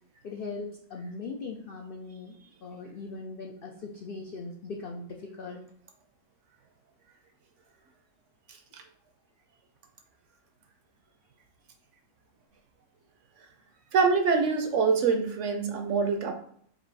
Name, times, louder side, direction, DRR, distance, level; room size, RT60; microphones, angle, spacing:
voice 1, 0.2-5.6, left 3 dB, 85° left, 2 dB, 0.4 m, -40 dB
voice 2, 13.9-16.3, right 5 dB, 65° right, 5 dB, 0.8 m, -25 dB
4.5 x 2.5 x 4.0 m, 0.63 s
omnidirectional pair, 1.5 m